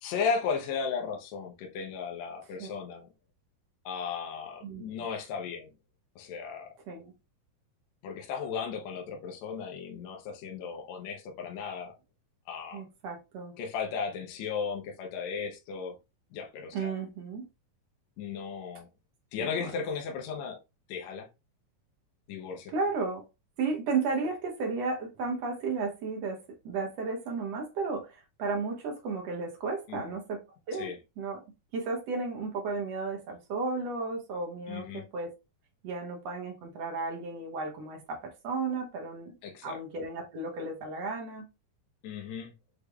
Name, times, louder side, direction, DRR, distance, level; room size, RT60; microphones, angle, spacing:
voice 1, 0.0-3.1 3.9-5.7 6.2-6.7 8.0-11.9 12.5-12.8 13.6-16.0 16.3-16.9 18.2-18.9 19.3-20.6 20.9-21.3 22.3-22.7 29.9-30.1 30.7-31.0 34.7-35.0 39.4-39.8 42.0-42.5, left 6 dB, 70° left, 1.8 m, -35 dB
voice 2, 12.7-13.6 16.7-17.5 19.4-19.5 22.7-23.2 23.6-30.4 30.7-31.4 31.7-35.3 35.8-39.3 39.6-41.4, right 4 dB, 70° right, 1.7 m, -33 dB
6.4 x 3.3 x 2.3 m
omnidirectional pair, 4.1 m